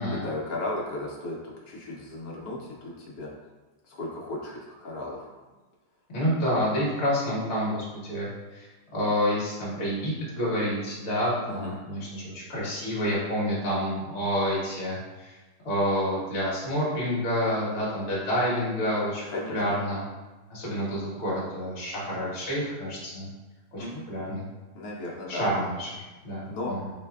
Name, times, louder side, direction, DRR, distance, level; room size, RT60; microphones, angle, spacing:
voice 1, 0.0-3.3 3.9-5.3 11.5-11.8 19.3-19.6 23.8-24.0 24.7-25.5 26.5-26.7, left 2 dB, 65° left, -4 dB, 1.0 m, -35 dB
voice 2, 6.1-8.7 8.9-15.3 15.6-20.0 20.5-23.3 23.7-24.5 25.3-26.9, equal, 45° left, -7 dB, 1.3 m, -28 dB
3.3 x 3.2 x 2.3 m, 1.2 s
omnidirectional pair, 2.0 m